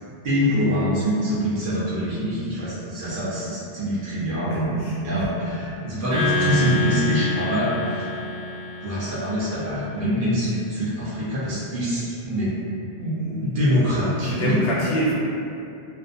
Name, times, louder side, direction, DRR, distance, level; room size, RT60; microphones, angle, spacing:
voice 1, 0.2-8.1 8.8-12.5 13.0-14.6, equal, 55° right, -9 dB, 0.8 m, -24 dB
voice 2, 4.5-5.3 13.2-13.6 14.2-15.1, right 1 dB, 70° left, -6 dB, 0.8 m, -27 dB
sound 1, 6.1-9.6, left 2 dB, 15° right, 0.9 m, -27 dB
2.5 x 2.1 x 2.4 m, 2.6 s
omnidirectional pair, 1.1 m